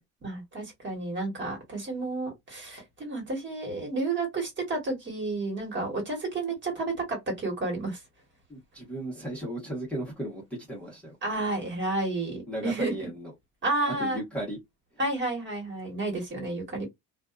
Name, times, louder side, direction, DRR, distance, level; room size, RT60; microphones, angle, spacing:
voice 1, 0.2-8.0 11.2-13.1 13.6-14.2 15.0-16.9, right 2 dB, 35° right, 1.5 m, -31 dB
voice 2, 8.5-10.4 10.7-11.2 12.5-13.3 13.9-14.6, right 1 dB, 5° left, 1.0 m, -35 dB
2.5 x 2.3 x 2.4 m
cardioid pair, 140°, 34 cm